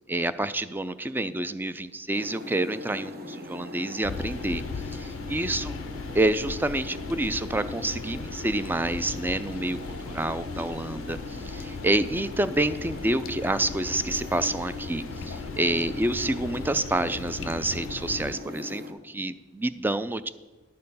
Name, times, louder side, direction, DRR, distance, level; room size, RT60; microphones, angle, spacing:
voice 1, 0.1-4.6 4.9-5.8 6.1-20.3, right 1 dB, 10° right, 13 dB, 0.3 m, -28 dB
sound 1, 2.1-18.9, left 1 dB, 50° right, 1.1 m, -40 dB
sound 2, 4.0-18.4, left 5 dB, 80° left, 0.4 m, -38 dB
11.0 x 6.6 x 5.4 m, 1.2 s
head